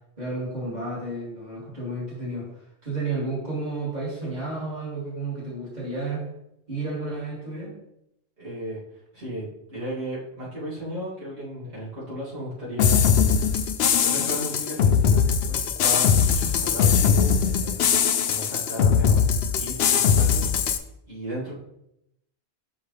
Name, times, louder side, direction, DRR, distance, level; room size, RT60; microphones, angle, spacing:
voice 1, 0.2-2.5 2.8-6.3 6.7-7.7, right 2 dB, 40° right, -7 dB, 2.8 m, -31 dB
voice 2, 8.4-8.8 9.1-13.7 14.0-17.9 18.3-19.3 19.6-21.5, equal, 80° right, -9 dB, 2.8 m, -35 dB
sound 1, 12.8-20.8, left 7 dB, 75° left, 0.8 m, -21 dB
6.2 x 5.6 x 3.3 m, 0.81 s
omnidirectional pair, 1.1 m